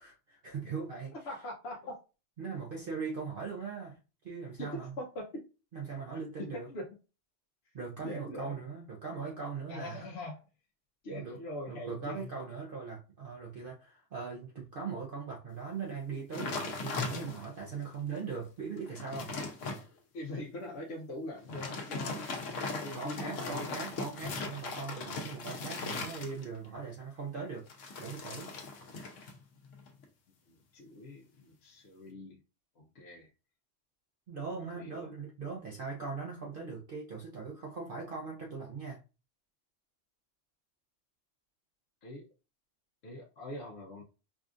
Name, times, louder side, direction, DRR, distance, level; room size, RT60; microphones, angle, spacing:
voice 1, 0.0-1.1 2.4-4.0 4.2-4.9 5.7-6.7 7.7-10.1 11.1-11.4 11.7-19.3 22.1-22.2 22.9-27.7 28.0-28.5 34.3-39.0, right 5 dB, 50° right, 0.8 m, -40 dB
voice 2, 1.2-1.9 4.6-5.2 6.5-6.8 8.0-8.5 9.7-10.4 11.0-12.3 20.1-23.8 30.5-32.4 32.8-33.3 34.7-35.1 42.0-42.2 43.0-44.0, left 1 dB, 60° left, 0.9 m, -42 dB
sound 1, 16.3-17.6 18.2-18.3 18.7-19.8 21.4-26.7 27.7-29.4 29.6-30.0, left 3 dB, 80° left, 1.1 m, -39 dB
4.8 x 2.4 x 2.5 m
omnidirectional pair, 1.3 m